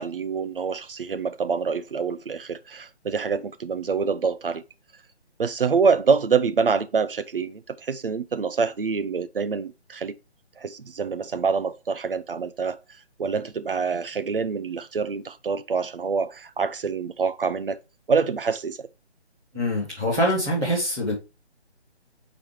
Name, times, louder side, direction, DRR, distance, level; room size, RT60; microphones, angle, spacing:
voice 1, 0.0-4.6 5.4-10.2 10.6-12.8 13.2-17.8 18.1-18.9, right 5 dB, 55° right, 0.6 m, -26 dB
voice 2, 19.5-21.1, equal, 5° right, 0.7 m, -24 dB
8.7 x 4.1 x 3.2 m
figure-of-eight pair, 160°, 34 cm